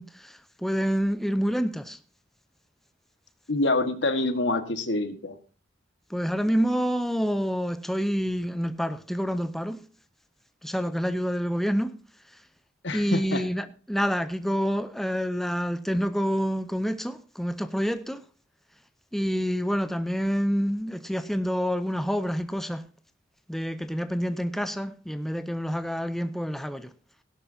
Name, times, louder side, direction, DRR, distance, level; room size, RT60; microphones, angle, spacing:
voice 1, 0.0-2.0 6.1-9.8 10.6-12.0 12.3-12.4 12.9-18.2 19.1-22.8 23.5-26.9, equal, ahead, 0.5 m, -28 dB
voice 2, 3.5-5.4 12.8-13.4, left 2 dB, 65° left, 1.6 m, -26 dB
17.5 x 11.5 x 2.7 m
head